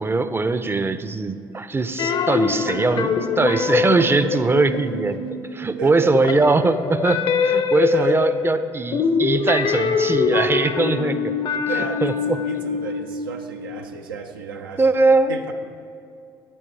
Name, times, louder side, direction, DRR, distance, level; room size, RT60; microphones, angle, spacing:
voice 1, 0.0-3.1 3.4-5.2 5.5-11.3 11.7-12.4 14.8-15.3, right 3 dB, 20° right, 12 dB, 0.5 m, -21 dB
sound 1, 2.0-5.7 6.0-13.8, left 5 dB, 45° left, 0.6 m, -24 dB
voice 2, 5.8-6.4 7.9-8.3 11.7-14.9 15.3-15.5, right 5 dB, 90° right, 5 dB, 0.5 m, -32 dB
8.6 x 8.6 x 3.3 m, 2.4 s
hypercardioid pair, 55°, 11 cm